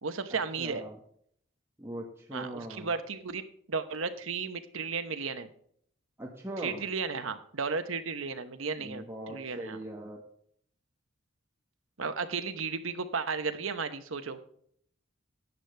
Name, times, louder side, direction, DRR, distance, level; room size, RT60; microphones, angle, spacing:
voice 1, 0.0-0.8 2.3-5.5 6.6-9.8 12.0-14.4, right 5 dB, 75° right, 9 dB, 1.0 m, -34 dB
voice 2, 0.6-1.0 1.8-2.9 6.2-6.8 8.8-10.2, right 1 dB, 10° right, -1 dB, 1.6 m, -40 dB
13.5 x 9.5 x 3.4 m, 0.64 s
head